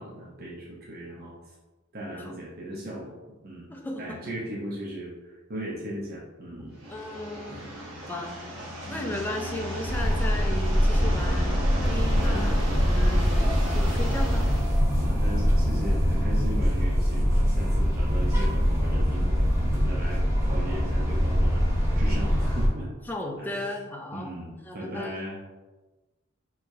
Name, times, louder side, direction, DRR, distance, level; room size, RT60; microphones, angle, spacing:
voice 1, 0.0-1.3 1.9-3.1 3.4-3.7 4.0-6.8 7.5-7.7 8.9-9.2 12.1-12.5 15.0-21.6 22.0-22.9 23.4-23.7 24.1-25.6, right 1 dB, 50° right, -6 dB, 0.8 m, -37 dB
voice 2, 3.7-4.2 6.9-8.4 8.9-14.5 23.0-24.3 24.6-25.1, left 1 dB, 10° left, 1 dB, 0.4 m, -36 dB
sound 1, 6.7-14.8, equal, 80° right, 1.0 m, -36 dB
sound 2, 9.8-22.7, equal, 15° right, 0.8 m, -23 dB
4.7 x 3.0 x 2.7 m, 1.2 s
head